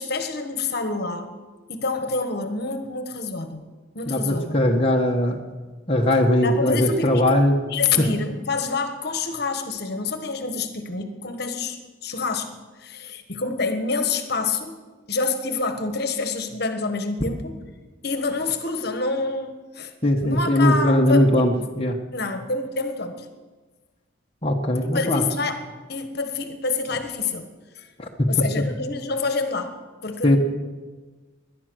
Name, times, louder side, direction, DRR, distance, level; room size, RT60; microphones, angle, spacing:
voice 1, 0.0-1.3 1.7-3.6 3.9-4.6 6.4-7.4 7.7-12.5 12.8-14.8 15.1-17.6 18.0-19.9 20.2-21.7 22.1-23.3 24.8-25.6 25.9-27.5 27.8-27.9 28.3-29.7 30.0-30.4, left 4 dB, 55° left, 7 dB, 1.4 m, -27 dB
voice 2, 4.1-5.4 5.9-7.6 8.0-8.1 20.0-22.0 24.4-25.2 28.0-28.4 30.2-30.4, left 1 dB, 30° left, 0 dB, 1.2 m, -20 dB
18.5 x 11.5 x 6.3 m, 1.3 s
head